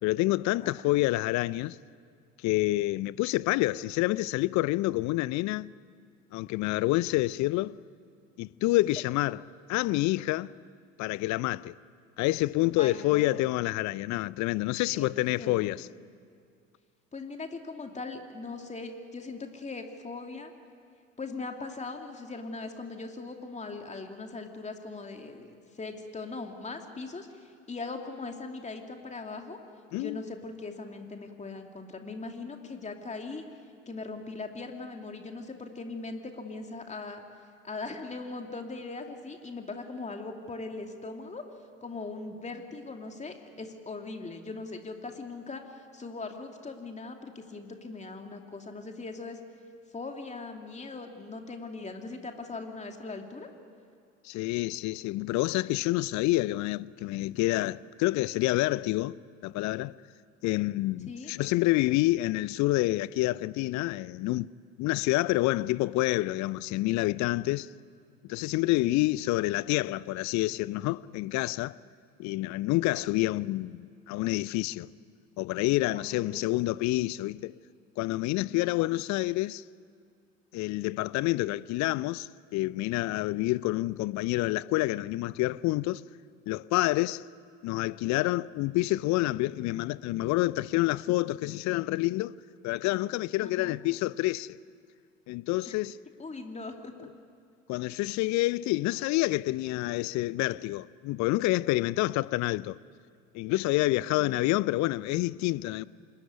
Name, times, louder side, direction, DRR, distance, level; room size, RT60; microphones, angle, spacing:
voice 1, 0.0-1.8 2.4-5.7 6.3-7.8 8.4-9.4 9.7-10.5 11.0-11.8 12.2-15.9 29.9-30.2 54.2-59.2 59.4-60.0 60.4-64.5 64.8-67.7 68.2-71.8 72.2-74.9 75.4-77.5 78.0-79.6 80.5-86.0 86.5-87.2 87.6-94.6 95.3-96.0 97.7-102.8 103.3-105.9, left 18 dB, 45° left, 0.7 m, -28 dB
voice 2, 12.8-13.4 14.9-15.8 17.1-20.5 21.2-29.6 30.0-33.4 33.9-37.2 37.6-41.4 41.8-49.4 49.9-53.5 61.1-61.3 68.8-69.0 75.9-76.5 93.4-93.8 95.7-95.8 96.2-97.1 104.2-104.4, left 3 dB, 20° left, 2.7 m, -40 dB
25.5 x 21.5 x 9.6 m
figure-of-eight pair, 65°, 38 cm